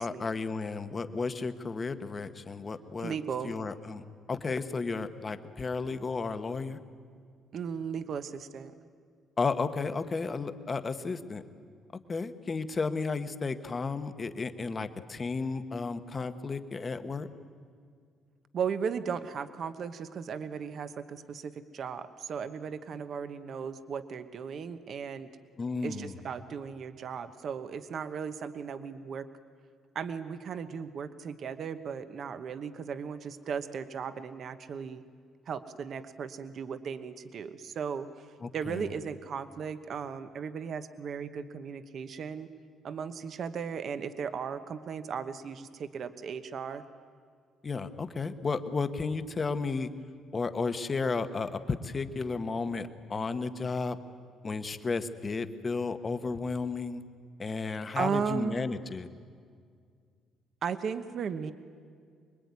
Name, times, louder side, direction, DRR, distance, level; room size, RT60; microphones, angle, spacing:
voice 1, 0.0-3.1 3.4-4.0 4.3-6.8 9.4-11.4 12.1-17.3 25.6-26.2 38.4-38.9 47.6-49.9 50.3-54.0 54.4-57.0 57.4-59.1, left 4 dB, 20° left, 10 dB, 1.1 m, -33 dB
voice 2, 3.0-3.5 7.5-8.7 18.5-25.3 25.8-29.3 29.9-35.0 35.5-38.3 38.5-42.5 42.8-46.8 57.9-58.6 60.6-61.5, right 6 dB, 40° right, 11 dB, 1.0 m, -36 dB
25.0 x 22.0 x 9.6 m, 2.1 s
cardioid pair, 175°, 0 cm